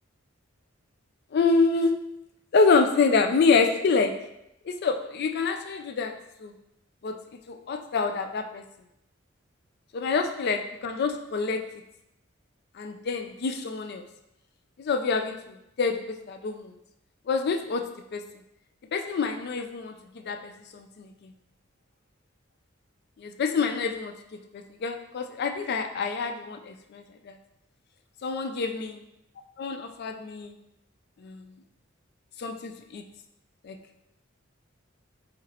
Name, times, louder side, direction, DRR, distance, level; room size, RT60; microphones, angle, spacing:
voice 1, 1.3-1.9 2.5-4.1 4.7-6.1 6.4-6.5 7.0-7.1 7.5-8.6 9.9-11.6 12.8-14.0 14.8-15.4 15.8-16.7 17.3-17.8 18.1-18.2 18.9-19.9 20.3-21.1 23.2-24.1 24.5-27.3 28.2-29.0 29.6-30.5 31.2-31.4 32.4-33.0 33.6-33.8, left 4 dB, 50° left, 5 dB, 0.4 m, -26 dB
3.6 x 3.2 x 2.9 m, 0.82 s
head